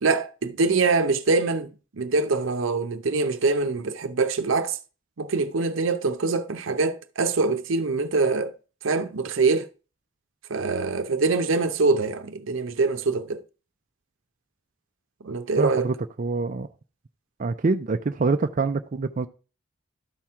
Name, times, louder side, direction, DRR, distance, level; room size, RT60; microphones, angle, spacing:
voice 1, 0.0-4.8 5.2-8.5 8.8-9.7 10.5-13.4 15.2-15.9, right 3 dB, 85° right, 0.7 m, -24 dB
voice 2, 15.6-16.7 17.4-19.3, right 3 dB, 40° right, 0.4 m, -25 dB
12.5 x 4.4 x 3.6 m
head